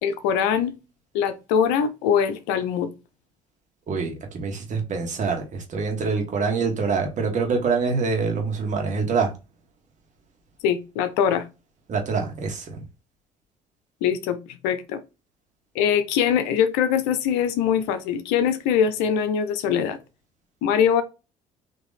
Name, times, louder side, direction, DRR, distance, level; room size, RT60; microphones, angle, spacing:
voice 1, 0.0-0.7 1.1-2.9 10.6-11.5 14.0-15.0 15.7-20.0 20.6-21.0, left 8 dB, 85° left, 0.7 m, -22 dB
voice 2, 3.9-9.3 11.9-12.8, right 4 dB, 50° right, 1.6 m, -25 dB
3.8 x 2.9 x 4.0 m
supercardioid pair, 75°, 16 cm